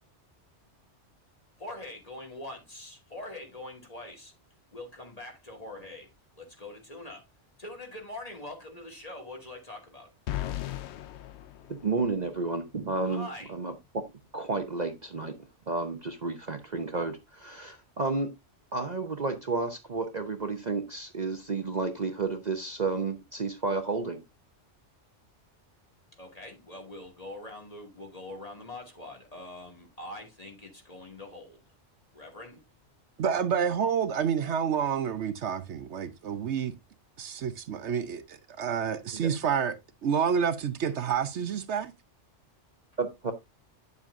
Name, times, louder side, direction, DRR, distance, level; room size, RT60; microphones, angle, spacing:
voice 1, 1.6-4.3 4.7-6.1 6.4-7.3 7.6-10.1 13.1-13.5 26.2-31.6 32.1-32.6, left 2 dB, 30° left, 2.4 m, -43 dB
sound 1, 10.3-12.4, left 13 dB, 70° left, 0.9 m, -37 dB
voice 2, 11.7-14.0 14.3-18.3 18.7-24.2 39.1-39.3 43.0-43.3, right 3 dB, 40° right, 0.9 m, -31 dB
voice 3, 33.2-36.7 37.2-39.8 40.0-41.9, right 7 dB, 70° right, 1.0 m, -29 dB
9.4 x 7.4 x 2.6 m
omnidirectional pair, 1.2 m